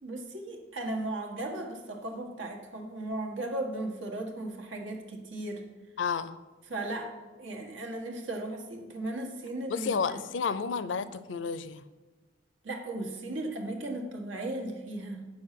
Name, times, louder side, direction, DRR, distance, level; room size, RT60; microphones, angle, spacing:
voice 1, 0.0-5.6 6.7-7.1 7.4-9.9 12.6-15.2, right 2 dB, 90° right, 2 dB, 1.6 m, -36 dB
voice 2, 6.0-6.4 9.7-11.8, left 5 dB, 75° left, 14 dB, 0.5 m, -31 dB
8.7 x 6.5 x 5.8 m, 1.3 s
head